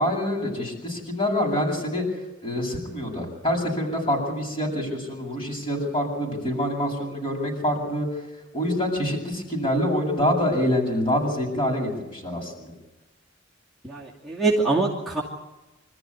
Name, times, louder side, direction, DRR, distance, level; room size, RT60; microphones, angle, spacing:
voice 1, 0.0-2.0 2.4-8.1 8.5-12.7, equal, 30° left, 0 dB, 7.9 m, -26 dB
voice 2, 13.8-15.2, right 3 dB, ahead, -3 dB, 2.6 m, -24 dB
26.0 x 14.0 x 9.8 m, 1.1 s
head